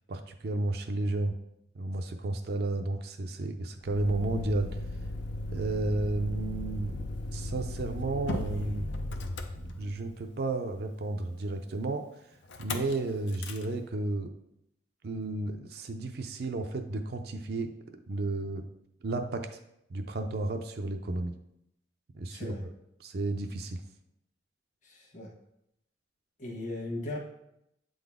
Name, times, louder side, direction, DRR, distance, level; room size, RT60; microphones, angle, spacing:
voice 1, 0.1-1.3 1.8-4.8 5.5-8.9 9.6-12.1 12.6-14.3 15.0-17.7 18.1-18.6 19.0-19.6 19.9-21.3 22.1-22.5 23.0-23.8, right 2 dB, 55° right, 5 dB, 0.4 m, -32 dB
Motor vehicle (road), 3.8-10.2 12.5-12.9 13.3-13.6, left 1 dB, 75° left, 0.6 m, -36 dB
voice 2, 22.3-22.6 24.8-25.3 26.4-27.2, left 2 dB, 40° left, -1 dB, 1.2 m, -37 dB
8.2 x 3.9 x 3.5 m, 0.79 s
head